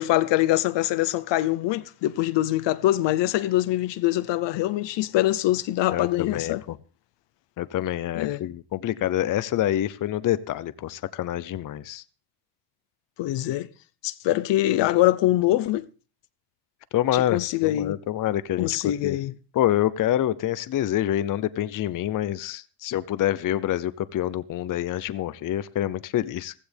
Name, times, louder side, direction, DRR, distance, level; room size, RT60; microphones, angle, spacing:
voice 1, 0.0-6.6 8.1-8.4 13.2-13.7 14.0-15.9 17.1-18.0 18.6-19.3, left 15 dB, 80° left, 0.8 m, -24 dB
voice 2, 5.9-6.8 7.6-12.0 16.9-19.2 19.5-26.5, left 12 dB, 45° left, 0.7 m, -27 dB
15.5 x 15.0 x 3.5 m
cardioid pair, 140°, 43 cm